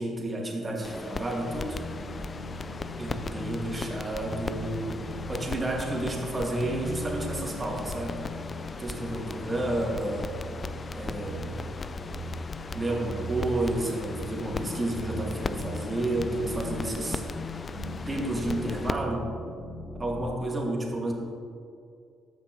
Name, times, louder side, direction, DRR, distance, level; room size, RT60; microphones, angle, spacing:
voice 1, 0.0-1.8 3.0-8.2 8.8-10.3 10.9-11.7 12.7-17.2 18.1-19.3 20.0-21.1, right 1 dB, 30° right, 0 dB, 1.8 m, -31 dB
sound 1, 0.8-18.9, left 4 dB, 40° left, 0.4 m, -38 dB
sound 2, 1.5-20.2, left 1 dB, 75° left, 1.2 m, -39 dB
14.0 x 5.8 x 3.0 m, 2.3 s
supercardioid pair, 65°, 0 cm